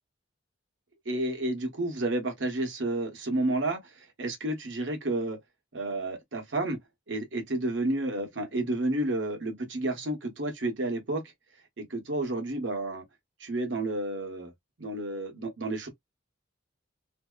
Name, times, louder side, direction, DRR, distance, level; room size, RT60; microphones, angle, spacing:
voice 1, 1.0-5.4 5.7-6.8 7.1-11.2 11.8-13.1 13.4-14.5 14.8-15.9, right 2 dB, 65° right, 1.1 m, -31 dB
2.7 x 2.0 x 2.3 m
head